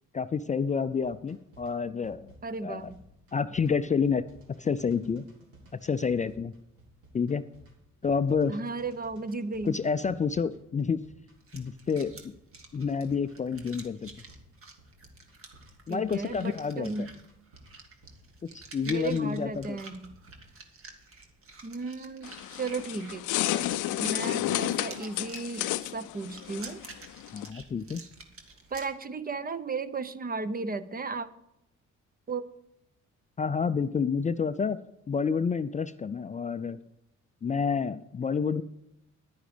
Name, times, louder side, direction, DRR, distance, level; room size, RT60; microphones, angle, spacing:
voice 1, 0.1-2.3 2.6-2.9 3.3-4.2 4.6-5.2 5.8-6.5 7.1-7.4 8.0-8.6 9.7-11.0 11.5-12.2 12.7-14.1 15.9-17.1 18.5-19.8 24.4-24.5 27.3-28.0 33.4-34.8 35.1-36.8 37.4-38.6, left 5 dB, 25° left, 12 dB, 0.4 m, -29 dB
sound 1, 1.0-20.6, right 1 dB, 75° right, 4.0 m, -56 dB
voice 2, 2.4-3.0 8.5-9.8 15.9-17.2 18.9-20.1 21.6-23.2 23.5-26.8 28.7-31.3 32.3-32.4, right 3 dB, 30° right, 14 dB, 0.7 m, -35 dB
sound 2, 11.4-28.9, right 3 dB, 45° right, 2.0 m, -49 dB
sound 3, 22.2-27.5, left 15 dB, 85° left, 0.5 m, -31 dB
10.5 x 10.0 x 5.0 m, 0.83 s
cardioid pair, 90°, 30 cm